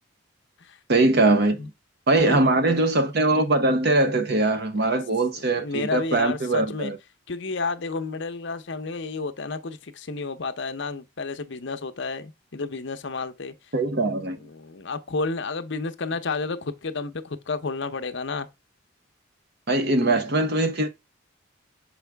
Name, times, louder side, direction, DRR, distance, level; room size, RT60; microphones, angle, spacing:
voice 1, 0.9-1.7 2.1-7.0 13.7-14.4 19.7-20.9, right 2 dB, 50° right, 0.9 m, -21 dB
voice 2, 2.2-2.6 4.8-5.0 5.3-6.9 7.3-13.5 14.4-18.5, left 3 dB, 55° left, 0.7 m, -31 dB
6.4 x 4.9 x 3.4 m
head